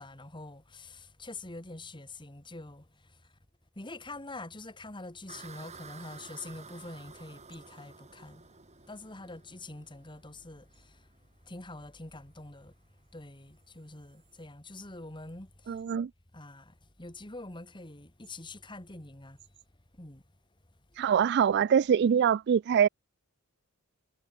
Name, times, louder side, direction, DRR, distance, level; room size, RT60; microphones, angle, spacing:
voice 1, 0.0-3.2 3.8-8.4 8.9-11.1 11.4-12.7 13.1-15.8 16.3-19.4 20.0-20.2, left 2 dB, 20° left, 2.3 m, -45 dB
sound 1, 5.3-14.4, right 5 dB, 30° right, 2.1 m, -53 dB
voice 2, 15.7-16.1 21.0-22.9, right 8 dB, 50° right, 0.3 m, -24 dB
head